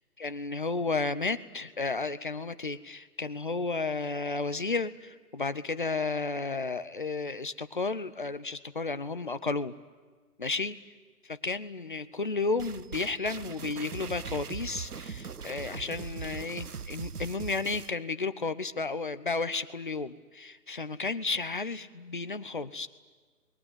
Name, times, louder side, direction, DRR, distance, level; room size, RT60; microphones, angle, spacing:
voice 1, 0.2-9.7 10.4-10.7 11.2-22.9, left 3 dB, 30° left, 13 dB, 0.8 m, -32 dB
sound 1, 12.6-17.9, right 6 dB, 70° right, 1.0 m, -40 dB
26.5 x 21.5 x 9.8 m, 1.4 s
figure-of-eight pair, 155°, 47 cm